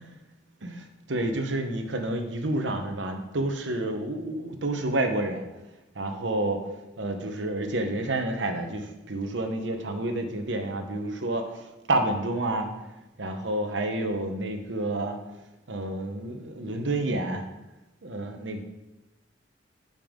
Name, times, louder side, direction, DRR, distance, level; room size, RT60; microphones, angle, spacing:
voice 1, 0.6-5.4 5.9-6.6 7.0-12.7 13.2-15.2 15.7-17.4 18.0-18.6, right 2 dB, 70° right, 6 dB, 1.0 m, -29 dB
10.5 x 5.3 x 3.7 m, 1.0 s
head